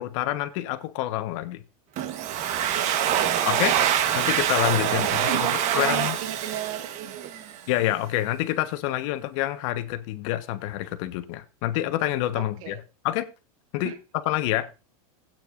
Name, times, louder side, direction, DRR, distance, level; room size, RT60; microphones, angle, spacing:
voice 1, 0.0-1.6 3.4-3.8 4.1-5.5 5.7-6.2 7.7-13.3 13.7-14.7, left 14 dB, 55° left, 1.2 m, -27 dB
Domestic sounds home sounds, 2.0-7.6, right 10 dB, 40° right, 1.2 m, -25 dB
voice 2, 2.7-3.4 3.7-4.0 4.8-7.3 12.3-12.8 13.8-14.0, right 10 dB, 65° right, 1.1 m, -34 dB
17.0 x 9.0 x 2.5 m
supercardioid pair, 135°, 19 cm